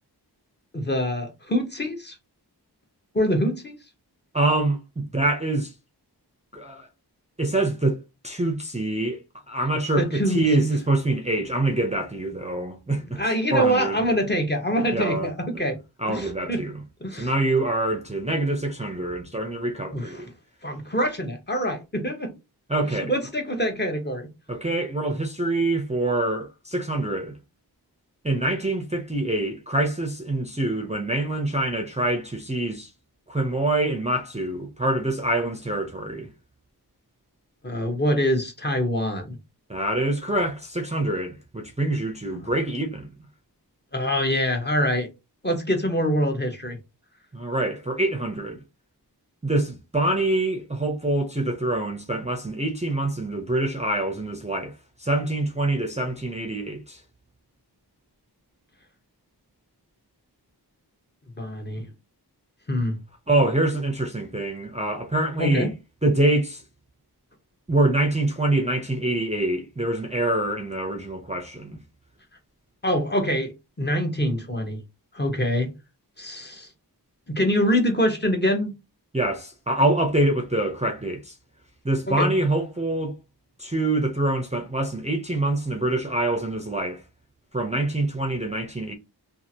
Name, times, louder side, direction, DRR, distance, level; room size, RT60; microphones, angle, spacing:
voice 1, 0.7-2.2 3.1-3.8 10.0-10.7 13.2-15.8 16.1-16.6 17.0-17.3 19.9-20.2 20.6-22.3 22.9-24.3 37.6-39.4 43.9-45.1 45.4-46.8 61.4-61.9 62.7-63.0 65.4-65.7 72.8-73.5 73.8-74.8 75.1-75.7 76.2-76.7 77.3-78.7 82.1-82.3, equal, 25° left, 0.9 m, -25 dB
voice 2, 4.3-5.7 6.5-6.9 7.4-9.2 9.5-14.1 14.9-15.6 16.0-16.8 17.1-20.3 22.7-23.1 24.5-27.4 28.2-32.9 33.3-36.3 39.7-43.1 47.3-48.6 49.4-54.7 55.0-57.0 63.3-65.7 66.0-66.6 67.7-71.8 79.1-81.3 81.8-83.1 83.6-87.0 87.5-88.9, right 2 dB, 15° right, 0.5 m, -25 dB
2.7 x 2.5 x 2.7 m
wide cardioid pair, 60°, 40 cm